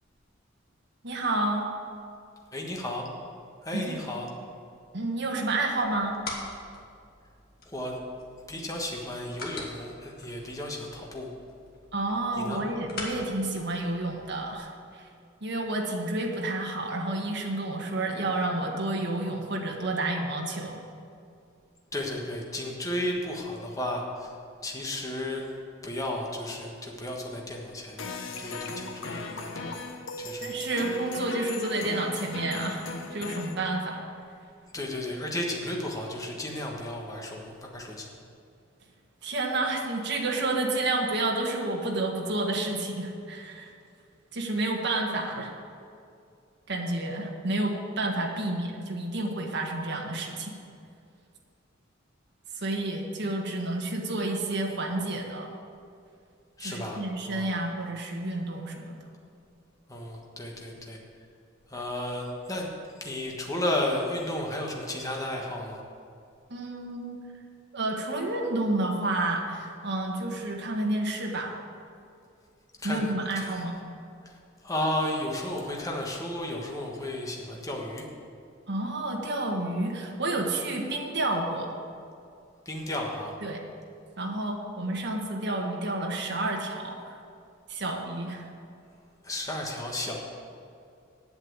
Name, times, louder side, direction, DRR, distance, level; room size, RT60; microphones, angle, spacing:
voice 1, 1.0-1.6 3.7-4.0 4.9-6.2 11.9-15.1 15.4-20.8 30.4-34.0 39.2-43.7 44.3-45.6 46.7-50.6 52.5-55.6 56.6-59.0 66.5-67.2 67.7-71.5 72.8-73.7 78.7-81.7 83.4-83.6 84.2-87.2 87.7-88.5, right 2 dB, 55° right, 1 dB, 1.6 m, -30 dB
voice 2, 2.5-3.1 3.6-4.3 7.7-8.0 8.5-11.3 12.4-12.6 21.9-24.3 24.6-25.5 25.8-29.8 30.2-30.6 34.7-38.1 56.6-57.0 57.3-57.6 59.9-61.0 61.7-62.7 63.0-65.8 72.8-73.6 74.2-74.3 74.6-78.0 82.6-83.3 89.2-90.2, left 1 dB, 15° left, -1 dB, 1.4 m, -33 dB
sound 1, 5.7-14.6, left 2 dB, 50° left, 1.8 m, -44 dB
sound 2, 28.0-33.5, left 2 dB, 65° left, 1.0 m, -37 dB
8.8 x 8.0 x 8.2 m, 2.4 s
head